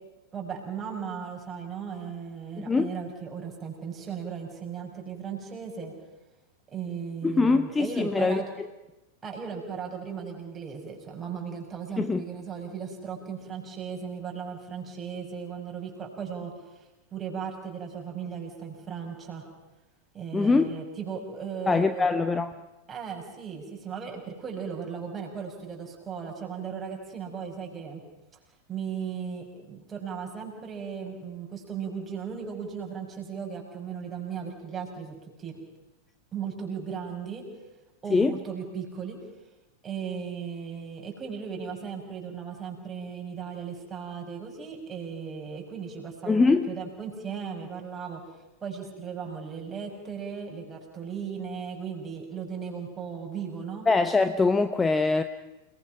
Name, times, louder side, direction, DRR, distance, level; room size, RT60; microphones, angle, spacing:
voice 1, 0.3-5.9 6.7-8.5 9.2-16.8 17.1-19.5 20.1-22.1 22.9-28.0 28.7-35.6 36.3-37.4 38.0-39.2 39.8-48.2 48.6-53.9, right 6 dB, 20° right, 0 dB, 6.1 m, -36 dB
voice 2, 2.6-2.9 7.2-8.7 12.0-12.2 20.3-20.6 21.7-22.5 38.1-38.3 46.3-46.7 53.9-55.2, left 3 dB, 15° left, 10 dB, 0.9 m, -23 dB
28.5 x 20.0 x 5.9 m, 0.99 s
figure-of-eight pair, 90°, 0 cm